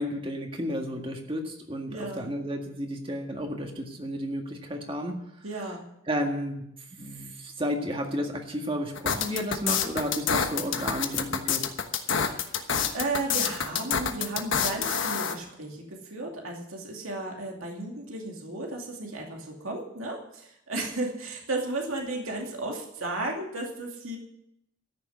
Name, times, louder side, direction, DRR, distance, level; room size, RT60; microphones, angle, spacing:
voice 1, 0.0-5.2 6.1-11.7, equal, 25° right, 2 dB, 1.8 m, -32 dB
voice 2, 1.9-2.2 5.4-5.8 12.1-24.2, right 2 dB, 90° right, 1 dB, 2.5 m, -34 dB
sound 1, 9.0-15.4, left 7 dB, 65° left, 1.2 m, -27 dB
14.0 x 6.9 x 9.5 m, 0.78 s
head